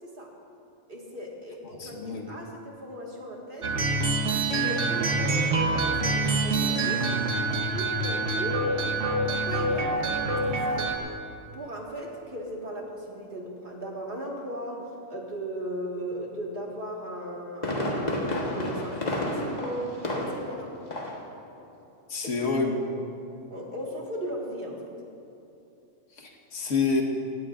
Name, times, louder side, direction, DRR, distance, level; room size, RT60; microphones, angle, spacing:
voice 1, 0.9-3.9 4.6-7.1 7.3-8.6 9.2-10.9 11.5-20.7 22.2-23.0 23.5-24.9, equal, 45° right, -2 dB, 1.9 m, -37 dB
voice 2, 1.8-2.3 22.1-22.8 26.2-27.0, left 4 dB, 85° left, 0 dB, 1.7 m, -27 dB
sound 1, 3.6-11.0, right 2 dB, 80° right, 1.4 m, -26 dB
Fireworks, 17.1-20.6 20.9-21.3 21.6-21.7, left 1 dB, 35° left, 1.4 m, -30 dB
17.5 x 16.5 x 2.5 m, 2.7 s
omnidirectional pair, 1.2 m